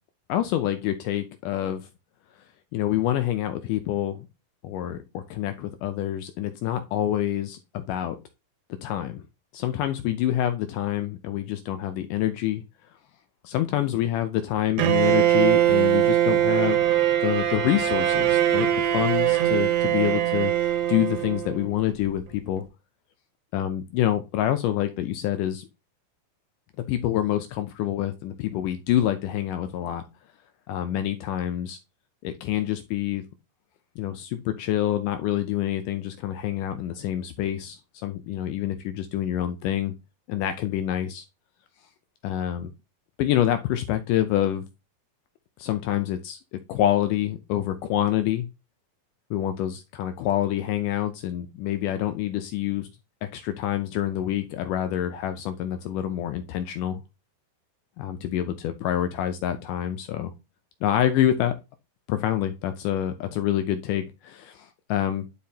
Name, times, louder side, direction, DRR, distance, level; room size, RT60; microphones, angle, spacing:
voice 1, 0.3-1.8 2.7-4.3 4.6-8.2 8.8-9.2 9.5-12.6 13.4-16.9 17.2-22.6 23.5-25.7 26.9-30.0 30.7-31.8 32.2-33.2 34.0-40.0 40.3-41.3 42.2-42.7 43.2-44.6 45.6-48.5 49.3-52.9 53.2-57.0 58.0-60.3 60.8-61.6 62.1-65.3, left 12 dB, 80° left, 9 dB, 1.9 m, -27 dB
Bowed string instrument, 14.8-21.7, right 11 dB, 85° right, 2.7 m, -22 dB
10.5 x 4.8 x 2.7 m, 0.26 s
omnidirectional pair, 4.2 m